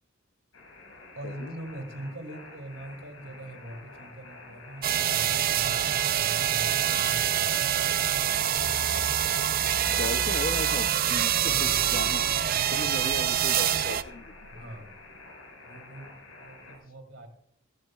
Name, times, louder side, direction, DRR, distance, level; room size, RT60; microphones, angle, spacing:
sound 1, 0.5-16.8, left 3 dB, 80° left, 5.1 m, -49 dB
voice 1, 1.1-6.0 6.2-7.7 11.4-13.2 13.4-13.7 14.5-14.9 15.7-17.3, right 1 dB, 75° right, 6 dB, 2.6 m, -43 dB
sound 2, 4.8-14.0, right 10 dB, 45° right, 0.5 m, -25 dB
sound 3, 8.6-14.8, left 1 dB, 25° left, 1.1 m, -42 dB
voice 2, 9.9-11.3 11.6-12.2 12.7-14.5, left 3 dB, 45° left, 12 dB, 0.6 m, -36 dB
15.0 x 15.0 x 2.3 m, 0.66 s
head